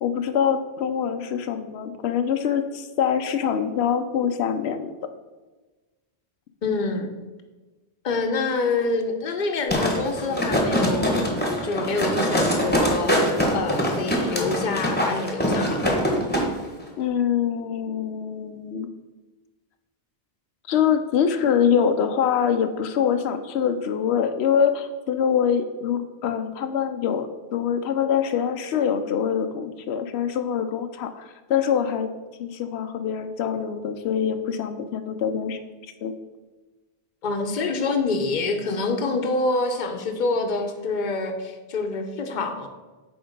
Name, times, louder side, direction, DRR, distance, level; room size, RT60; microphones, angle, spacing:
voice 1, 0.0-4.9 17.0-18.9 20.7-32.1 32.4-36.1, left 8 dB, 90° left, 8 dB, 0.8 m, -24 dB
voice 2, 6.6-7.1 8.0-11.3 11.6-13.1 13.5-15.9 37.2-42.7, left 3 dB, 50° left, 5 dB, 0.9 m, -26 dB
sound 1, 9.7-16.5 16.8-16.9, equal, 10° left, 1.2 m, -23 dB
8.7 x 3.5 x 5.1 m, 1.2 s
omnidirectional pair, 1.1 m